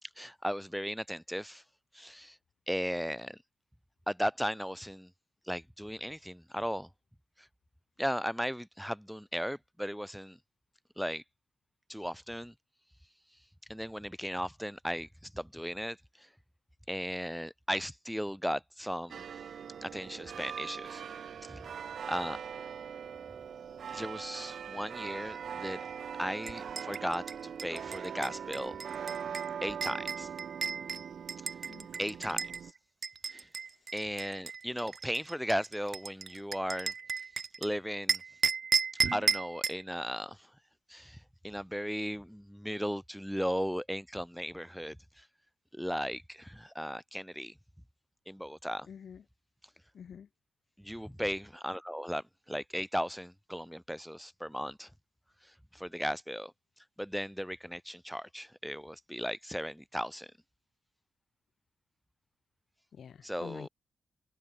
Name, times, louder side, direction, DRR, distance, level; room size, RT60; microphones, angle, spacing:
voice 1, 0.0-1.6 1.9-2.4 2.7-3.4 4.1-5.1 5.5-6.9 7.4-7.5 8.0-10.4 11.0-11.2 11.9-12.5 13.7-16.3 16.9-19.2 19.8-21.0 21.4-21.7 22.1-22.4 23.9-25.9 26.2-28.8 29.6-30.3 32.0-32.7 33.3-33.5 33.9-36.9 37.6-38.2 39.1-40.5 40.9-45.3 45.7-47.5 48.3-48.9 50.8-54.9 55.4-56.5 57.0-60.3 63.2-63.7, equal, ahead, 4.4 m, -36 dB
sound 1, 19.1-32.7, right 7 dB, 65° right, 5.4 m, -42 dB
sound 2, 26.4-32.6 33.0-37.7 38.1-39.8, right 6 dB, 50° right, 2.1 m, -34 dB
voice 2, 48.8-49.2 49.9-50.3 51.0-51.1 62.9-63.7, left 7 dB, 65° left, 2.9 m, -47 dB
wide cardioid pair, 135°, 0 cm